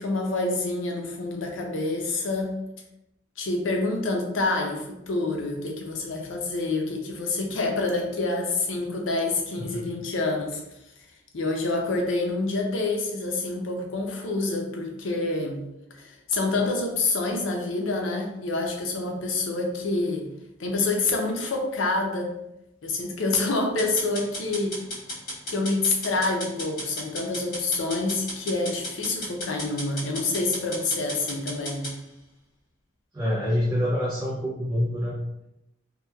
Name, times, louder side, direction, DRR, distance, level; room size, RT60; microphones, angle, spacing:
voice 1, 0.0-2.5 3.4-10.6 11.3-15.6 15.9-20.3 20.6-22.3 22.8-24.8 25.5-31.9, left 2 dB, 85° left, 1 dB, 0.5 m, -27 dB
sound 1, 23.8-31.9, equal, 50° left, 1.3 m, -35 dB
voice 2, 33.1-35.4, equal, 15° right, -7 dB, 0.4 m, -26 dB
2.9 x 2.2 x 2.2 m, 0.87 s
head